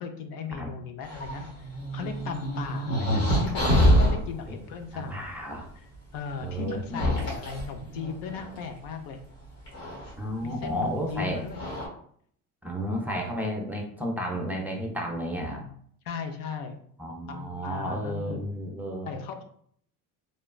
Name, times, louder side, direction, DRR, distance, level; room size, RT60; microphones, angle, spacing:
voice 1, 0.0-5.3 5.8-5.9 6.1-9.2 10.4-11.7 16.1-16.8 17.3-18.4 19.1-19.4, left 5 dB, 60° left, 5 dB, 0.5 m, -37 dB
sound 1, 1.1-4.2 5.6-5.7 6.7-8.6 9.7-10.1 11.1-11.2 11.5-11.9, equal, 80° left, 1.4 m, -25 dB
voice 2, 4.9-5.7 6.4-7.0 10.2-11.4 12.6-15.6 17.0-19.1, equal, 5° right, 0 dB, 0.5 m, -32 dB
3.1 x 2.1 x 2.4 m, 0.62 s
supercardioid pair, 80°, 39 cm